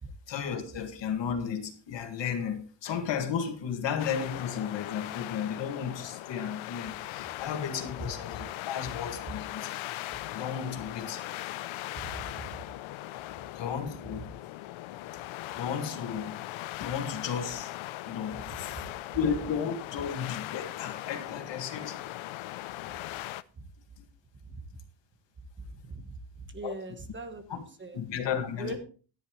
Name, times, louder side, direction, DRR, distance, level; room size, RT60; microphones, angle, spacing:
voice 1, 0.3-9.7 10.3-11.2 13.5-14.3 15.1-15.3 15.5-16.4 16.7-17.7 18.1-18.8 19.1-22.0 24.0-24.1 26.6-26.7 27.5-27.6 27.9-28.8, left 7 dB, 65° left, 2.0 m, -34 dB
sound 1, 4.0-23.4, left 16 dB, 85° left, 0.6 m, -39 dB
voice 2, 12.0-12.6 13.3-13.4 14.0-14.1 18.3-18.6 22.9-23.0 23.5-23.7 24.4-24.6 25.6-28.0 28.5-28.8, right 2 dB, 25° right, 1.2 m, -42 dB
14.0 x 10.5 x 3.1 m
cardioid pair, 170°, 46 cm